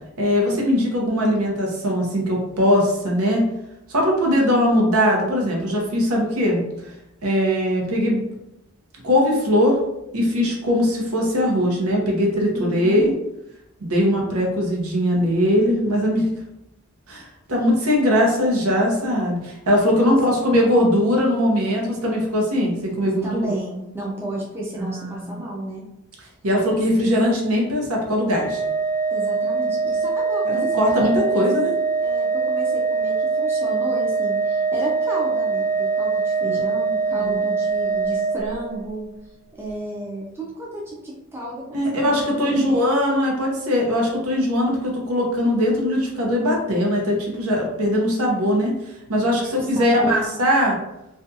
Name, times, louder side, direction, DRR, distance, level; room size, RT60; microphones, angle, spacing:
voice 1, 0.2-3.4 3.9-6.6 7.2-8.2 9.0-9.8 10.1-13.1 13.8-16.3 17.1-23.5 24.8-25.4 26.4-28.6 30.5-31.7 36.4-36.6 37.1-37.4 41.7-48.7 49.1-50.7, equal, 85° right, -1 dB, 0.7 m, -20 dB
voice 2, 12.5-13.1 20.0-20.2 23.2-25.8 29.1-31.4 32.0-39.1 39.5-43.0 49.4-50.3, right 1 dB, 10° right, -4 dB, 0.4 m, -33 dB
Organ, 28.3-39.0, right 4 dB, 65° left, 0.4 m, -23 dB
2.5 x 2.3 x 2.6 m, 0.89 s
head